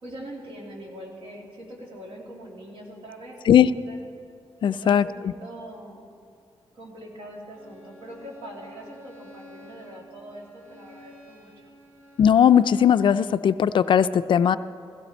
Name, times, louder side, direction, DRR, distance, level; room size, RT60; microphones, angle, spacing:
voice 1, 0.0-3.4 3.9-4.0 4.6-6.0 6.7-11.5, right 1 dB, 70° right, -2 dB, 3.0 m, -42 dB
voice 2, 4.6-5.3 12.2-14.6, left 8 dB, 55° left, 13 dB, 0.3 m, -18 dB
Bowed string instrument, 7.5-13.0, left 1 dB, 20° right, 2.8 m, -50 dB
16.0 x 16.0 x 4.4 m, 2.4 s
wide cardioid pair, 160°, 10 cm